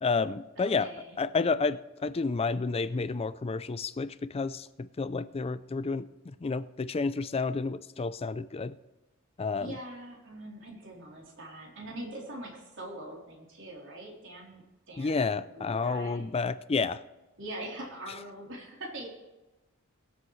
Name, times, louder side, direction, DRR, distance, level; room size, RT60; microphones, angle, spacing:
voice 1, 0.0-0.9 1.2-8.7 9.4-9.8 15.0-17.0, left 4 dB, 30° left, 14 dB, 0.4 m, -30 dB
voice 2, 0.6-1.2 9.6-16.3 17.4-19.1, right 1 dB, 60° right, -1 dB, 3.5 m, -43 dB
23.5 x 7.9 x 3.2 m, 1.1 s
head